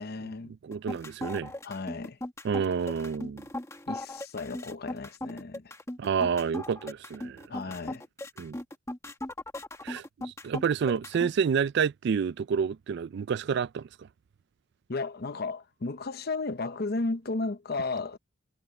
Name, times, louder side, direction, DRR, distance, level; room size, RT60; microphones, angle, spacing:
voice 1, 0.0-0.5 1.6-2.2 3.9-5.7 7.5-8.0 14.9-18.2, left 3 dB, 50° left, 0.9 m, -34 dB
voice 2, 0.6-1.5 2.4-3.4 6.0-7.5 8.4-8.6 9.8-13.9, right 6 dB, 55° right, 0.3 m, -29 dB
sound 1, 0.7-11.3, left 1 dB, 15° left, 1.5 m, -38 dB
head